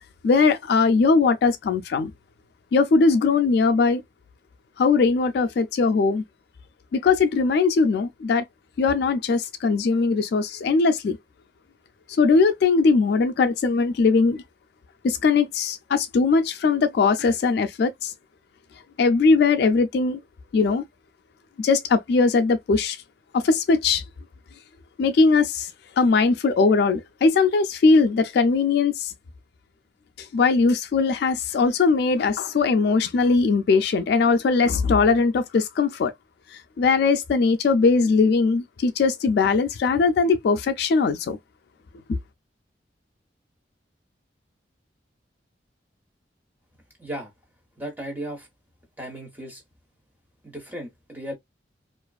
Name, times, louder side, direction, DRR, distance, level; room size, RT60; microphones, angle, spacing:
voice 1, 0.2-2.1 2.7-4.0 4.8-6.2 6.9-8.4 8.8-11.2 12.2-14.4 15.0-18.1 19.0-20.2 20.5-20.8 21.6-23.0 23.3-24.0 25.0-25.7 26.0-29.1 30.2-36.1 36.5-41.4 42.1-42.2, left 4 dB, 60° left, 0.3 m, -20 dB
voice 2, 47.0-47.3 47.8-48.5 49.0-49.6 50.4-51.3, right 1 dB, 10° right, 1.0 m, -35 dB
2.4 x 2.3 x 2.3 m
head